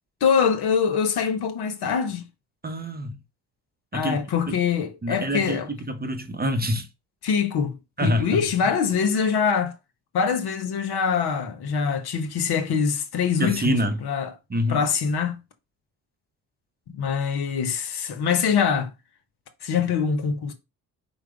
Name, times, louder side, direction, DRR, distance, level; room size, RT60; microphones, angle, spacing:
voice 1, 0.2-2.2 3.9-5.7 7.2-9.7 10.1-14.3 14.7-15.4 16.9-18.9 19.6-20.5, left 6 dB, 60° left, 0.8 m, -24 dB
voice 2, 2.6-3.2 3.9-4.2 4.5-4.6 5.0-6.9 8.0-8.4 13.4-14.0 14.5-14.8, equal, 20° right, 0.7 m, -26 dB
4.6 x 2.1 x 3.7 m
hypercardioid pair, 45°, 44 cm